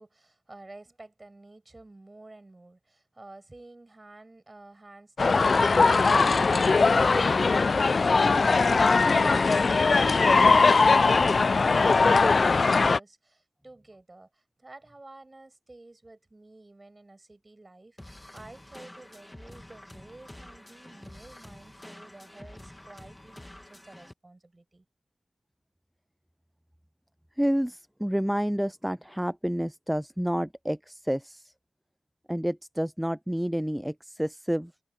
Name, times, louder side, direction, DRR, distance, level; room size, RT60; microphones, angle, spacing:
voice 1, 0.0-24.9, right 2 dB, 25° right, 7.6 m, -50 dB
sound 1, 5.2-13.0, left 4 dB, 50° left, 0.5 m, -20 dB
sound 2, 18.0-24.1, left 1 dB, 15° left, 2.6 m, -48 dB
voice 2, 27.4-31.5 32.3-34.7, equal, 5° right, 0.3 m, -29 dB
cardioid pair, 55°, 0 cm